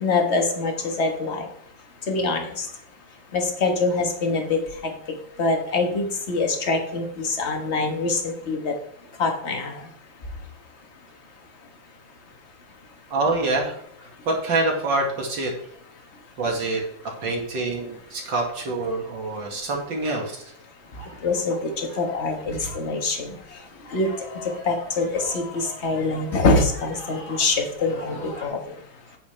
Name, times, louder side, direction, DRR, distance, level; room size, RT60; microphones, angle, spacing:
voice 1, 0.0-0.7 1.0-1.5 2.1-2.7 3.3-4.6 5.4-8.7 9.2-9.8 21.2-23.3 23.9-24.1 24.6-28.6, left 3 dB, 35° left, 3 dB, 1.6 m, -24 dB
voice 2, 13.1-15.5 16.4-20.4, right 2 dB, 65° right, 0 dB, 2.8 m, -26 dB
sound 1, 20.8-28.5, left 3 dB, 75° left, 2.9 m, -43 dB
9.3 x 8.9 x 3.3 m, 0.69 s
omnidirectional pair, 2.2 m